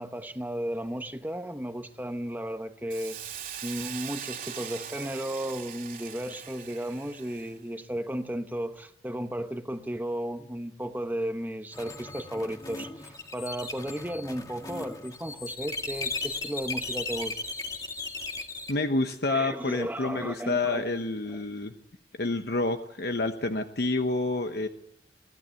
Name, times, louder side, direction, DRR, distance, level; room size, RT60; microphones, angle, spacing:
voice 1, 0.0-3.3 3.6-17.4 19.3-21.0 21.3-21.4, right 1 dB, 10° right, 8 dB, 1.1 m, -34 dB
Hiss, 2.9-7.6, right 8 dB, 50° right, 2.5 m, -41 dB
sound 1, 11.7-18.7, left 3 dB, 20° left, 2.0 m, -36 dB
voice 2, 18.7-21.7 22.2-24.7, left 2 dB, 55° left, 7 dB, 1.0 m, -28 dB
22.5 x 15.5 x 8.2 m, 0.80 s
head